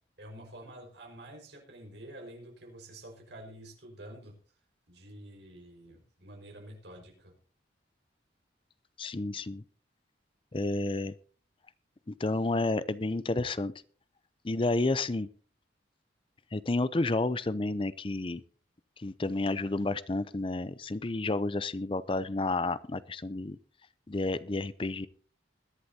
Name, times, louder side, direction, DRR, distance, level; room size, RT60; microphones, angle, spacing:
voice 1, 0.2-4.3 4.9-7.3, right 1 dB, 65° right, 1 dB, 5.1 m, -48 dB
voice 2, 9.0-9.6 10.5-11.1 12.1-13.7 14.4-15.3 16.5-18.4 19.0-23.6 24.1-25.1, left 2 dB, 30° left, 17 dB, 0.6 m, -30 dB
21.5 x 11.5 x 2.8 m, 0.42 s
head